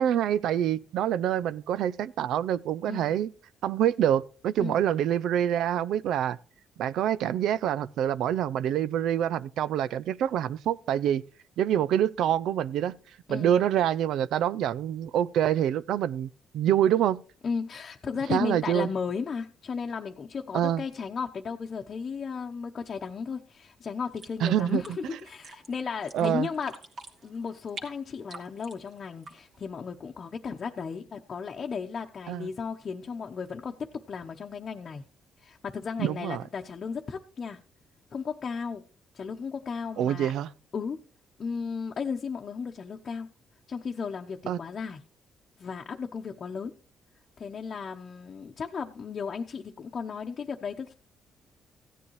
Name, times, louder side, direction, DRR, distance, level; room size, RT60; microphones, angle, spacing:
voice 1, 0.0-3.3 3.6-6.4 6.8-11.2 11.6-13.0 13.3-17.2 18.3-18.9 20.5-20.8 24.4-24.8 26.1-26.5 32.3-32.5 36.0-36.4 40.0-40.5 44.5-44.6, right 10 dB, 80° right, 0.4 m, -26 dB
voice 2, 2.9-3.2 4.6-4.8 13.3-13.5 17.4-26.8 27.2-35.0 35.4-37.6 38.1-38.8 39.1-40.3 40.7-41.0 41.4-43.3 43.7-45.0 45.6-46.7 47.4-50.9, left 5 dB, 45° left, 0.9 m, -35 dB
sound 1, 24.1-29.6, right 3 dB, 60° right, 2.5 m, -47 dB
16.0 x 9.8 x 3.1 m
cardioid pair, 90°, 0 cm